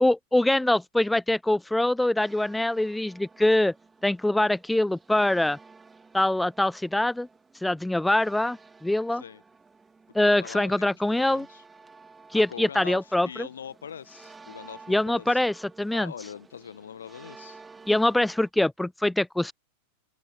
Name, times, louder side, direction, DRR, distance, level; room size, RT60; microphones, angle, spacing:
voice 1, 0.0-3.7 4.0-5.6 6.1-7.3 7.6-9.2 10.1-11.5 12.3-13.5 14.9-16.1 17.9-19.5, left 1 dB, 5° left, 0.3 m, -24 dB
sound 1, 2.2-18.5, right 4 dB, 15° right, 2.9 m, -53 dB
voice 2, 10.2-11.6 12.3-15.4 15.9-17.6, left 8 dB, 65° left, 1.2 m, -42 dB
open air
figure-of-eight pair, 90°, 0 cm